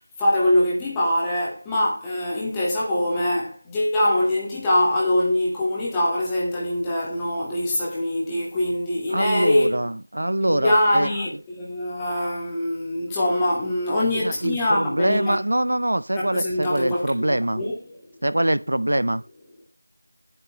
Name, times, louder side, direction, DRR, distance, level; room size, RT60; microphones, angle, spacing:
voice 1, 0.2-9.8 10.4-15.4 16.2-18.0, left 1 dB, 5° left, 2.0 m, -23 dB
voice 2, 9.1-11.1 14.1-17.6 18.2-19.2, right 1 dB, 65° right, 0.8 m, -23 dB
20.0 x 7.9 x 3.3 m
figure-of-eight pair, 175°, 0 cm